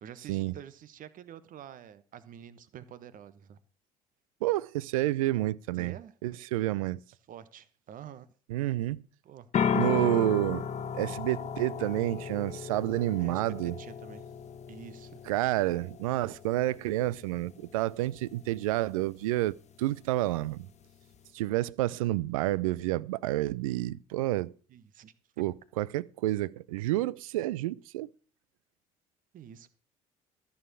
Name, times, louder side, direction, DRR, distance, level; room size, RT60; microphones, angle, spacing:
voice 1, 0.0-3.6 5.7-6.1 7.3-8.3 9.2-9.5 13.2-14.2 14.7-15.2 16.2-16.3 24.7-25.1 29.3-29.8, right 9 dB, 50° right, 1.2 m, -48 dB
voice 2, 4.4-5.9 6.2-7.0 8.5-9.0 9.7-10.6 10.9-13.8 15.3-20.7 21.3-24.5 25.4-28.1, right 16 dB, 75° right, 0.5 m, -29 dB
sound 1, 9.5-21.3, left 7 dB, 40° left, 1.2 m, -36 dB
14.0 x 7.1 x 6.1 m
figure-of-eight pair, 55°, 18 cm